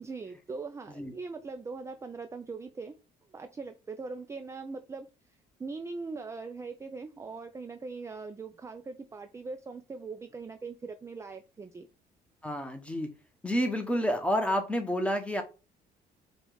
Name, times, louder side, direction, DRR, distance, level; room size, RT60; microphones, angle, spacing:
voice 1, 0.0-3.0 3.3-5.1 5.6-11.9, right 4 dB, 15° right, 0.4 m, -41 dB
voice 2, 12.4-13.1 13.4-15.4, equal, 5° left, 1.0 m, -29 dB
5.0 x 2.4 x 3.8 m
cardioid pair, 110°, 17 cm